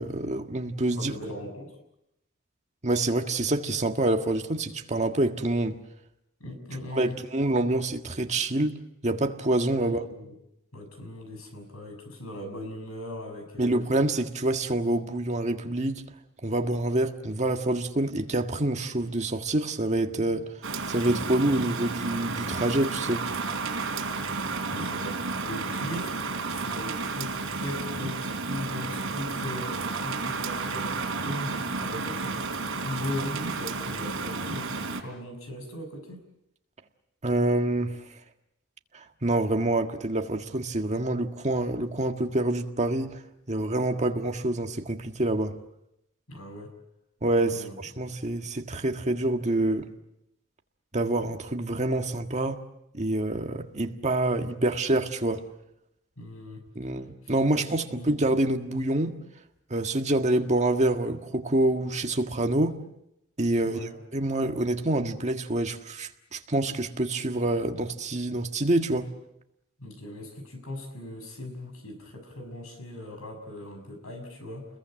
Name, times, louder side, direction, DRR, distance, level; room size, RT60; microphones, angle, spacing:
voice 1, 0.0-1.1 2.8-5.8 6.9-8.8 9.0-10.0 13.6-16.0 16.4-20.5 20.9-23.3 37.2-38.0 39.2-43.2 43.5-45.6 47.2-49.9 50.9-52.6 52.9-55.4 56.8-59.2 59.7-62.8 63.4-69.1, right 2 dB, 35° right, 1.7 m, -26 dB
voice 2, 0.9-1.7 6.4-7.2 9.8-10.3 10.7-13.8 24.4-26.2 26.5-36.2 46.3-46.7 47.5-47.8 56.2-56.6 57.2-58.1 63.6-64.0 69.8-74.7, left 1 dB, 80° left, 6.5 m, -39 dB
Rain, 20.6-35.0, right 4 dB, 65° right, 4.0 m, -32 dB
29.5 x 21.5 x 7.7 m
head